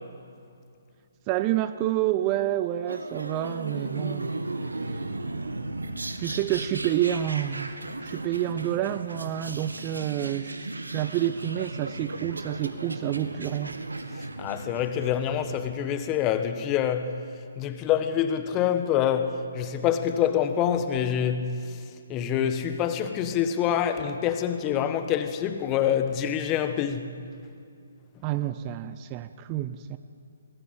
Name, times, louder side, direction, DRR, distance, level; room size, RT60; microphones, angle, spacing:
voice 1, 1.3-4.4 6.2-7.7 8.0-10.7 10.9-13.8 28.2-30.0, right 13 dB, 25° right, 0.6 m, -28 dB
sound 1, 2.9-15.6, right 2 dB, 75° right, 1.8 m, -36 dB
voice 2, 14.1-17.2 17.6-21.8 22.1-27.1, left 9 dB, 20° left, 1.4 m, -26 dB
24.0 x 18.0 x 8.3 m
figure-of-eight pair, 135°, 0 cm